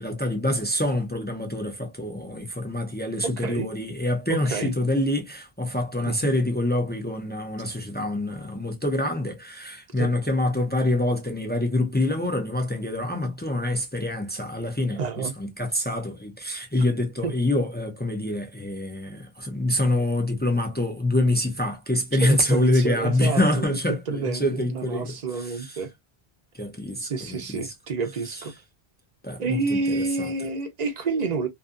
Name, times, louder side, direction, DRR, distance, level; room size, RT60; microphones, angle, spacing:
voice 1, 0.0-25.8 26.5-27.6 29.2-29.6 29.9-30.3, left 1 dB, 15° left, 0.3 m, -26 dB
voice 2, 3.2-3.7 4.3-4.7 6.1-6.3 10.0-10.1 15.0-15.3 17.2-17.3 22.2-23.6 24.1-25.9 27.0-28.5 29.4-31.5, right 4 dB, 50° right, 0.6 m, -29 dB
2.6 x 2.6 x 2.4 m
omnidirectional pair, 1.0 m